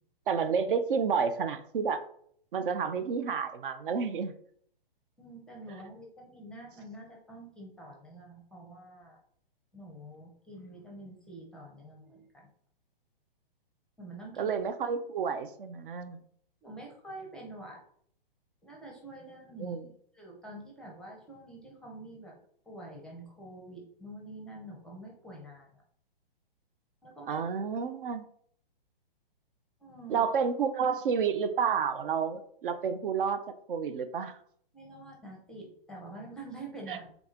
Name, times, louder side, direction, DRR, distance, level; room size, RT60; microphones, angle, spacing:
voice 1, 0.3-2.0 2.5-4.3 14.4-16.2 19.6-19.9 27.3-28.2 30.1-33.4 33.7-34.4 36.9-37.0, right 6 dB, 65° right, 9 dB, 0.5 m, -30 dB
voice 2, 5.2-9.2 9.7-12.5 14.0-14.5 16.6-17.8 18.6-19.8 20.1-22.4 22.7-25.8 27.0-27.4 29.8-30.2 34.7-37.1, right 1 dB, 5° left, 0 dB, 0.5 m, -46 dB
3.5 x 3.0 x 3.7 m, 0.63 s
hypercardioid pair, 135°, 29 cm